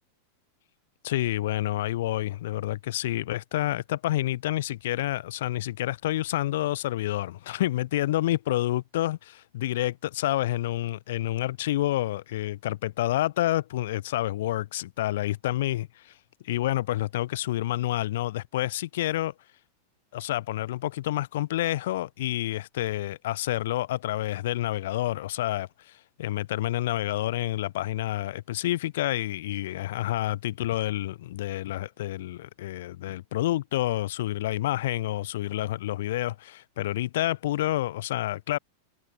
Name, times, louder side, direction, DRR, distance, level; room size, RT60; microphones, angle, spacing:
voice 1, 1.0-16.1 16.4-19.3 20.1-38.6, left 14 dB, 55° left, 7.6 m, -29 dB
figure-of-eight pair, 90°, 0 cm